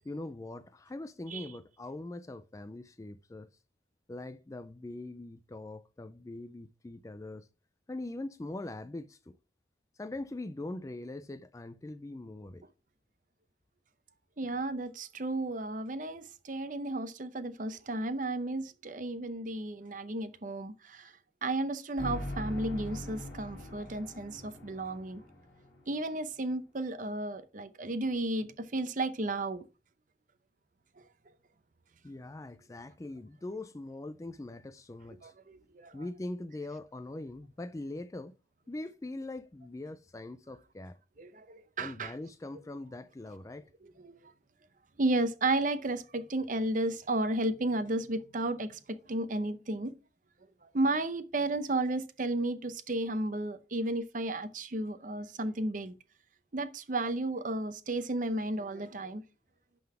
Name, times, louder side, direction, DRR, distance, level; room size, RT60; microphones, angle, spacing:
voice 1, 0.0-3.5 4.1-7.5 7.9-9.3 10.0-12.6 32.0-35.3 35.9-38.3 38.7-41.0 41.8-43.7, left 2 dB, 15° left, 0.3 m, -42 dB
voice 2, 14.4-21.1 21.4-25.2 25.9-29.6 35.2-36.0 41.2-42.1 44.0-44.1 45.0-49.9 50.7-56.0 56.5-59.2, right 2 dB, 45° right, 0.7 m, -33 dB
sound 1, 22.0-26.1, left 1 dB, 55° left, 3.1 m, -41 dB
11.0 x 3.9 x 4.8 m
head